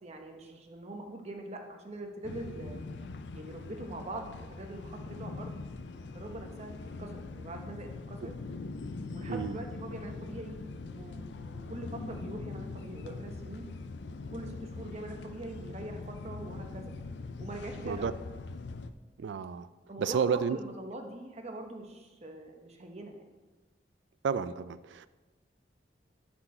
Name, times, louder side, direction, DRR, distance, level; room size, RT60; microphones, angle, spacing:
voice 1, 0.0-2.8 3.3-5.6 6.1-8.3 9.1-13.7 14.3-16.9 17.4-18.2 19.9-23.2, right 1 dB, 40° right, 3 dB, 1.0 m, -43 dB
sound 1, 2.2-18.9, left 3 dB, 75° left, 0.4 m, -42 dB
voice 2, 19.2-19.7 20.0-20.6 24.2-25.1, right 6 dB, 80° right, 15 dB, 0.3 m, -31 dB
11.0 x 4.5 x 4.3 m, 1.2 s
head